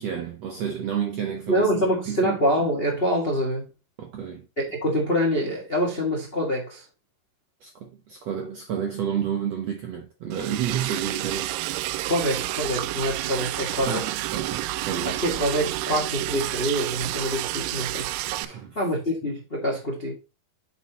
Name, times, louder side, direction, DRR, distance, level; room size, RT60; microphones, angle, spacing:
voice 1, 0.0-2.4 4.0-4.5 7.6-12.3 13.9-15.2 18.4-18.8, right 8 dB, 70° right, 1.5 m, -31 dB
voice 2, 1.5-3.7 4.6-6.8 12.1-14.0 15.0-20.1, equal, 50° left, 0.6 m, -26 dB
Liquid, 10.3-18.5, right 16 dB, 90° right, 2.5 m, -30 dB
8.2 x 5.9 x 2.9 m
omnidirectional pair, 4.3 m